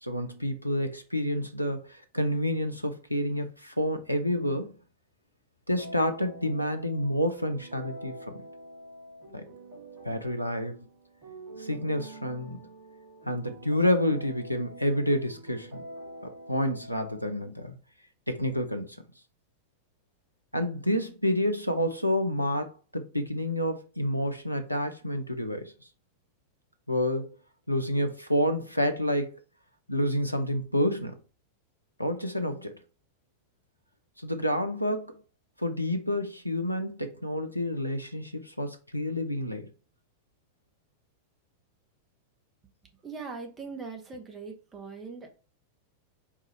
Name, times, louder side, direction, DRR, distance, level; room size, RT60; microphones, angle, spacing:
voice 1, 0.0-4.7 5.7-8.4 9.3-9.4 10.0-10.9 11.6-12.6 13.3-15.8 16.2-17.7 18.3-19.0 20.5-25.7 26.9-27.4 27.7-29.3 29.9-31.2 32.0-32.8 34.2-35.2 35.6-39.7, equal, 90° left, 0.7 m, -29 dB
sound 1, 5.8-17.4, right 1 dB, 55° right, 2.4 m, -46 dB
voice 2, 43.0-45.3, right 4 dB, 20° right, 0.9 m, -40 dB
4.7 x 2.5 x 4.3 m
figure-of-eight pair, 90°, 0 cm